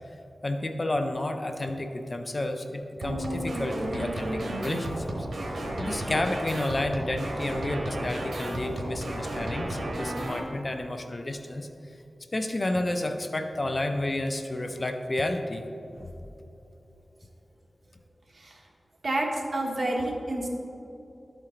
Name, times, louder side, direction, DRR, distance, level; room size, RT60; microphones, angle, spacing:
voice 1, 0.4-5.0 5.5-11.7 12.3-15.7 16.0-16.1, left 1 dB, 40° left, 6 dB, 0.5 m, -31 dB
sound 1, 3.0-10.4, right 1 dB, 85° right, 1.1 m, -33 dB
voice 2, 19.0-20.5, right 1 dB, 60° right, 0 dB, 1.2 m, -29 dB
12.0 x 4.5 x 3.8 m, 3.0 s
wide cardioid pair, 75°, 0 cm